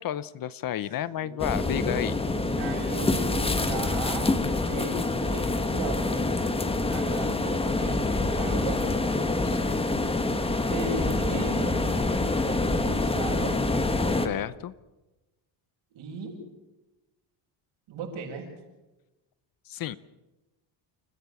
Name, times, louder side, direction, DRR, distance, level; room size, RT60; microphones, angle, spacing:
voice 1, 0.0-2.2 9.4-9.8 14.2-14.7 19.7-20.0, left 11 dB, 45° left, 17 dB, 0.8 m, -32 dB
voice 2, 1.0-4.4 4.7-8.8 10.7-13.6 15.9-16.4 17.9-18.5, right 3 dB, 70° right, 0 dB, 7.7 m, -37 dB
sound 1, 1.4-14.3, left 2 dB, 10° left, 1.4 m, -26 dB
29.5 x 15.0 x 7.1 m, 1.0 s
cardioid pair, 155°, 48 cm